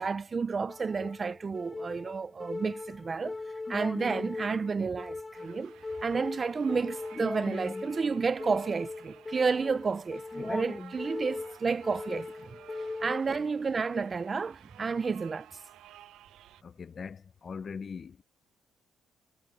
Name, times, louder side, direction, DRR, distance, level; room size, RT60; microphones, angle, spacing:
voice 1, 0.0-3.4 3.7-5.7 6.0-12.6 13.0-15.5, right 5 dB, 35° right, 0.7 m, -31 dB
sound 1, 0.7-13.7, left 3 dB, 20° left, 0.6 m, -39 dB
sound 2, 5.3-16.6, right 13 dB, 85° right, 0.9 m, -54 dB
voice 2, 13.0-13.4 16.6-18.2, left 5 dB, 45° left, 1.0 m, -42 dB
cardioid pair, 90°, 0 cm